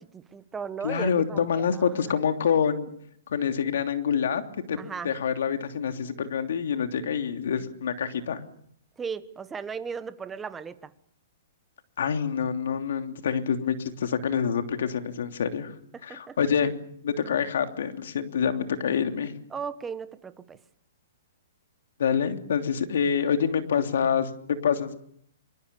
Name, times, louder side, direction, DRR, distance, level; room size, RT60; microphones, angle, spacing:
voice 1, 0.0-1.9 4.8-5.1 9.0-10.9 15.9-16.4 17.2-17.4 19.5-20.6, right 6 dB, 10° right, 12 dB, 1.3 m, -36 dB
voice 2, 0.8-2.9 3.3-4.4 4.7-4.8 5.0-8.4 12.0-15.7 16.0-16.7 17.0-19.3 22.0-24.9, left 7 dB, 75° left, 6 dB, 3.0 m, -26 dB
25.0 x 24.5 x 7.0 m, 0.66 s
hypercardioid pair, 150°, 0 cm